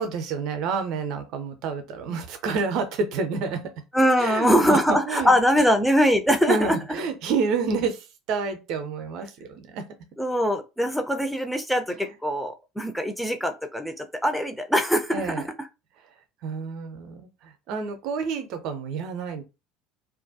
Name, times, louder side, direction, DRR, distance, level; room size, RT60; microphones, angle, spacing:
voice 1, 0.0-3.7 4.2-5.3 6.5-9.8 15.1-15.4 16.4-19.4, right 5 dB, 55° right, 0.5 m, -29 dB
voice 2, 3.9-6.8 10.2-15.3, equal, ahead, 0.5 m, -22 dB
2.4 x 2.1 x 2.6 m
figure-of-eight pair, 65°, 0 cm